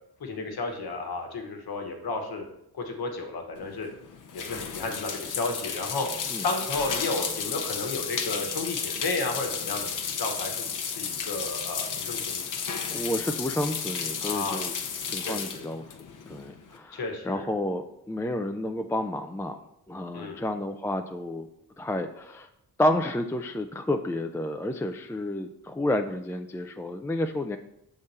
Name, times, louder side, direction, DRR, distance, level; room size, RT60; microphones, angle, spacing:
voice 1, 0.2-2.5 2.7-3.9 4.3-6.1 6.4-12.4 14.2-14.7 15.2-15.6 16.9-17.5 20.1-20.4, left 3 dB, 80° left, 3 dB, 1.1 m, -33 dB
sound 1, 3.5-16.8, left 6 dB, 55° left, 0.7 m, -33 dB
voice 2, 12.9-14.7 15.0-15.8 16.2-17.0 17.2-19.6 19.9-21.5 21.8-22.5 22.8-27.6, left 1 dB, 10° left, 5 dB, 0.3 m, -30 dB
6.5 x 3.7 x 4.1 m, 0.79 s
cardioid pair, 65°, 37 cm